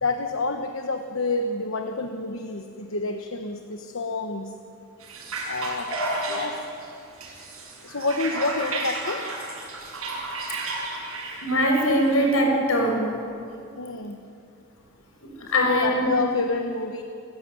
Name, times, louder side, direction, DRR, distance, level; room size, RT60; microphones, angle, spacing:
voice 1, 0.0-4.5 5.5-5.9 6.3-6.6 7.8-9.2 13.8-14.2 15.4-17.0, left 3 dB, 65° left, 5 dB, 1.2 m, -28 dB
sound 1, 5.0-12.4, right 2 dB, 90° right, 7.8 m, -32 dB
voice 2, 11.4-13.1 15.5-16.1, equal, 85° left, 2 dB, 6.2 m, -21 dB
28.5 x 15.0 x 9.6 m, 2.6 s
head